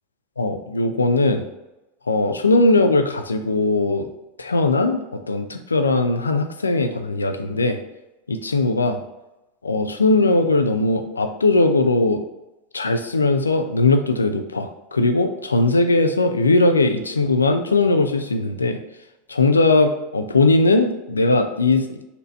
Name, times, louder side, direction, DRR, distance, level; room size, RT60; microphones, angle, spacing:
voice 1, 0.4-1.4 2.1-4.1 4.4-7.8 8.3-9.0 9.6-12.2 12.7-18.8 19.3-22.0, left 2 dB, 90° left, 6 dB, 0.4 m, -19 dB
4.2 x 2.7 x 4.4 m, 0.98 s
hypercardioid pair, 85°, 0 cm